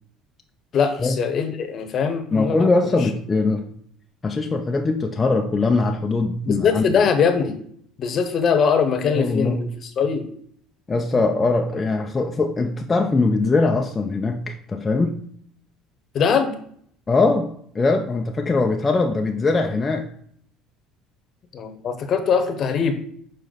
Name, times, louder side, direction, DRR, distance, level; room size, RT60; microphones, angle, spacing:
voice 1, 0.7-2.6 6.4-7.6 8.0-10.2 16.1-16.5 21.5-23.0, left 6 dB, 45° left, 8 dB, 1.0 m, -21 dB
voice 2, 2.3-3.7 4.2-7.0 9.0-9.7 10.9-15.2 17.1-20.1, left 3 dB, 20° left, 2 dB, 0.5 m, -21 dB
6.7 x 4.2 x 4.0 m, 0.63 s
supercardioid pair, 110°, 0 cm